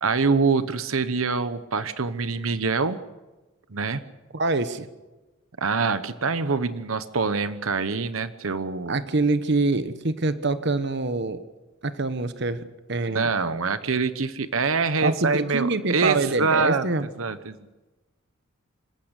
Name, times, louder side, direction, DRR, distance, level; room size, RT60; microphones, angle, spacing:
voice 1, 0.0-3.0 3.7-4.0 5.6-9.0 13.1-16.9 17.2-17.6, right 4 dB, 90° right, 12 dB, 1.1 m, -25 dB
voice 2, 4.3-4.9 8.9-11.4 11.8-13.3 15.0-17.0, right 3 dB, 55° right, 11 dB, 1.2 m, -25 dB
26.5 x 15.5 x 8.2 m, 1.1 s
head